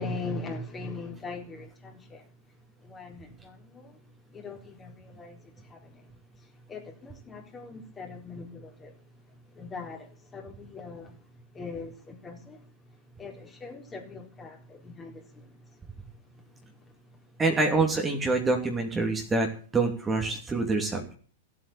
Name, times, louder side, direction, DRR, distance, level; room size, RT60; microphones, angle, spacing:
voice 1, 0.0-2.2 2.8-4.0 4.3-6.1 6.7-8.9 9.5-11.1 11.5-12.6 13.2-15.5, left 3 dB, 20° left, 4.1 m, -40 dB
voice 2, 17.4-19.5 19.7-21.1, right 3 dB, 15° right, 2.8 m, -26 dB
15.0 x 8.5 x 8.6 m
figure-of-eight pair, 100°, 0 cm